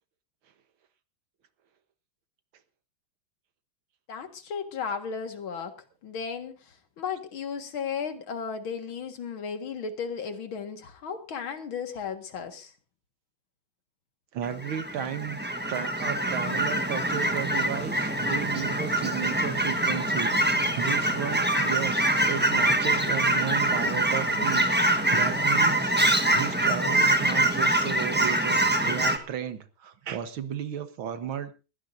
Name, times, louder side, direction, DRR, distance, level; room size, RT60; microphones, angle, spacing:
voice 1, 4.1-5.7 6.0-12.7, left 6 dB, 85° left, 7 dB, 2.5 m, -35 dB
voice 2, 14.3-25.9 26.3-31.5, right 9 dB, 80° right, 11 dB, 2.0 m, -34 dB
Fowl / Chirp tweet, 14.4-29.2, right 1 dB, 5° right, 0.8 m, -24 dB
21.0 x 16.0 x 2.6 m, 0.31 s
omnidirectional pair, 2.2 m